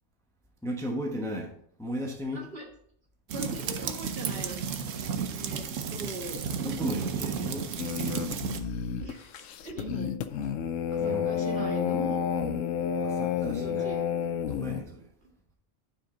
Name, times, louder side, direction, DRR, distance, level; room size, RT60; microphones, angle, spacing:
voice 1, 0.6-1.5 1.8-2.4 6.6-7.8 11.0-11.3 13.0-13.9 14.5-15.1, equal, 5° left, 0.9 m, -35 dB
voice 2, 2.3-2.7 3.3-4.8 5.2-6.4 9.0-10.1 10.9-12.2 13.4-14.1, right 1 dB, 50° right, 2.3 m, -40 dB
sound 1, 3.3-8.6, right 6 dB, 90° right, 1.1 m, -33 dB
sound 2, 7.8-14.8, left 7 dB, 90° left, 1.0 m, -30 dB
9.2 x 5.1 x 3.8 m
omnidirectional pair, 1.3 m